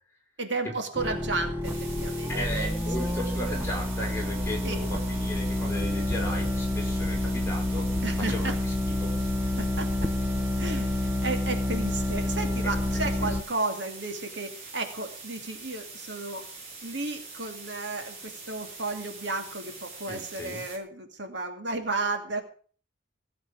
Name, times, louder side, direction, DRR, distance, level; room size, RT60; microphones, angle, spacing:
voice 1, 0.4-2.7 3.0-3.1 4.6-4.8 8.0-8.5 9.6-10.1 10.6-16.5 16.8-22.4, right 3 dB, 60° right, 6 dB, 2.5 m, -33 dB
sound 1, 0.9-13.4, left 1 dB, 10° right, 1.1 m, -28 dB
sound 2, 1.6-20.8, right 3 dB, 35° right, 5.8 m, -44 dB
voice 2, 2.3-7.9 8.3-8.5 9.0-9.1 12.9-13.3 20.1-20.6, left 1 dB, 15° left, -1 dB, 5.1 m, -36 dB
17.0 x 7.9 x 8.3 m, 0.42 s
head